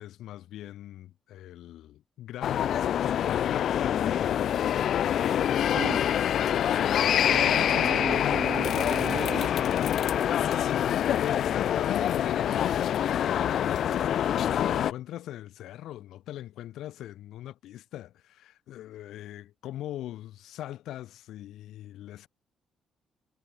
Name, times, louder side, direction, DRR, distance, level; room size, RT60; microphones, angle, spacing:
voice 1, 0.0-4.7 5.6-6.0 7.5-8.5 10.5-22.3, left 13 dB, 80° left, 3.1 m, -40 dB
sound 1, 2.4-14.9, left 10 dB, 65° left, 0.4 m, -25 dB
voice 2, 7.3-9.6, right 6 dB, 50° right, 4.5 m, -35 dB
cardioid pair, 90°, 0 cm